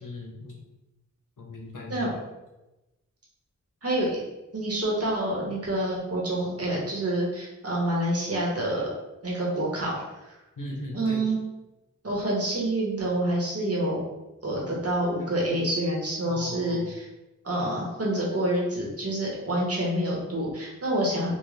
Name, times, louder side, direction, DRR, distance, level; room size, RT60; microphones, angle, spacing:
voice 1, 0.0-0.6 1.4-2.2 10.6-11.2 16.3-16.9, left 1 dB, 85° left, -2 dB, 0.8 m, -38 dB
voice 2, 3.8-4.2 4.5-8.9 9.2-10.3 10.9-11.4 12.0-14.0 14.4-17.1 17.4-21.3, right 1 dB, 50° right, -4 dB, 1.1 m, -27 dB
3.7 x 2.3 x 3.3 m, 1.0 s
wide cardioid pair, 70°, 31 cm